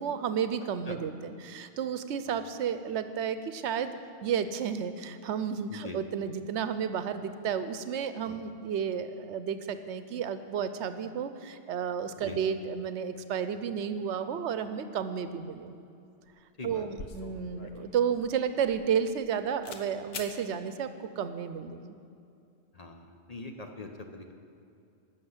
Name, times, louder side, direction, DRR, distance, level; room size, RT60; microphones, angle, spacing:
voice 1, 0.0-3.9 4.2-15.7 16.6-20.9 21.2-21.9, right 7 dB, 80° right, 11 dB, 0.9 m, -32 dB
sound 1, 16.2-16.4 16.6-19.3 19.6-19.9 20.1-20.4, left 4 dB, 65° left, 1.1 m, -44 dB
voice 2, 22.7-24.3, left 2 dB, 40° left, 4 dB, 0.8 m, -42 dB
11.5 x 6.8 x 8.0 m, 2.5 s
omnidirectional pair, 1.2 m